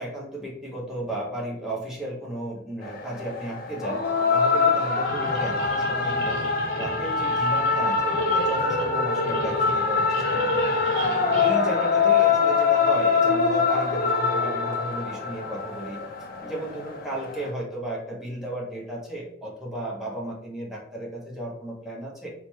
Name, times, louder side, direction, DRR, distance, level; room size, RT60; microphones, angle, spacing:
voice 1, 0.0-4.0 4.3-6.4 6.7-10.6 11.2-16.0 16.4-22.3, right 1 dB, 5° right, -4 dB, 0.7 m, -34 dB
sound 1, 2.8-17.5, left 4 dB, 50° left, 0.4 m, -24 dB
sound 2, 5.0-12.5, right 1 dB, 90° right, 0.7 m, -38 dB
3.2 x 2.1 x 3.0 m, 0.73 s
head